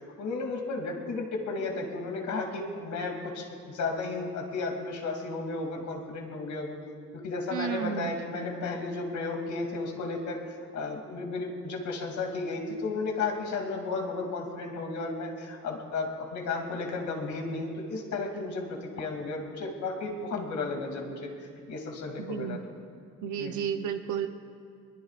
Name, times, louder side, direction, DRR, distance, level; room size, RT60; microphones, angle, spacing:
voice 1, 0.2-6.8 7.2-21.3 21.7-22.6 23.4-23.6, left 3 dB, 70° left, 2 dB, 2.6 m, -33 dB
voice 2, 7.5-8.1 22.3-22.6 23.2-24.3, right 8 dB, 80° right, 6 dB, 0.8 m, -32 dB
21.5 x 21.5 x 2.5 m, 2.3 s
cardioid pair, 90°, 30 cm